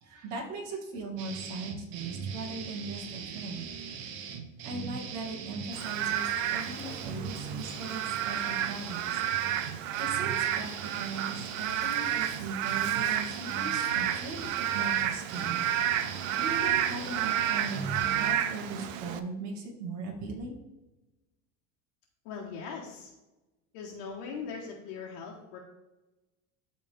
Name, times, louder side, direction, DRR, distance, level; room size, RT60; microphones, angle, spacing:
voice 1, 0.0-3.7 4.6-9.2 10.0-15.6 16.4-20.6, right 3 dB, 45° right, -1 dB, 2.2 m, -39 dB
sound 1, 1.2-18.3, right 6 dB, 70° right, 1.1 m, -40 dB
Frog / Rain, 5.7-19.2, right 11 dB, 85° right, 0.8 m, -31 dB
voice 2, 22.2-23.1 23.7-25.6, left 5 dB, 60° left, -3 dB, 1.4 m, -40 dB
12.5 x 4.2 x 3.6 m, 1.0 s
supercardioid pair, 145°, 38 cm